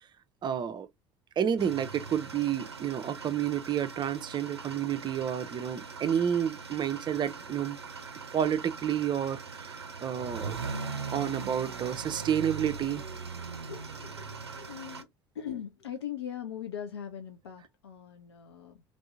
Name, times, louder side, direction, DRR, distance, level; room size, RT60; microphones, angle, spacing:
voice 1, 0.4-0.9 1.4-7.8 8.3-10.6 11.1-13.0, right 9 dB, 35° right, 0.5 m, -30 dB
sound 1, 1.6-15.0, right 4 dB, 90° right, 0.5 m, -40 dB
voice 2, 13.7-15.1 15.3-18.8, left 9 dB, 80° left, 0.5 m, -40 dB
3.3 x 2.7 x 2.5 m
figure-of-eight pair, 65°, 13 cm